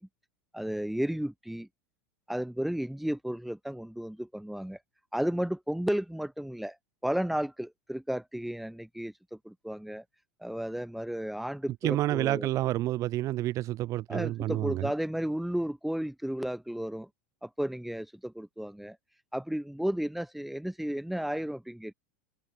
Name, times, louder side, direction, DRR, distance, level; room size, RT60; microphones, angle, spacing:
voice 1, 0.5-1.7 2.3-4.8 5.1-6.7 7.0-10.0 10.4-12.5 14.1-17.1 17.4-19.0 19.3-21.9, equal, ahead, 5.2 m, -33 dB
voice 2, 11.8-14.9, right 15 dB, 40° right, 3.3 m, -29 dB
hypercardioid pair, 120°, 8 cm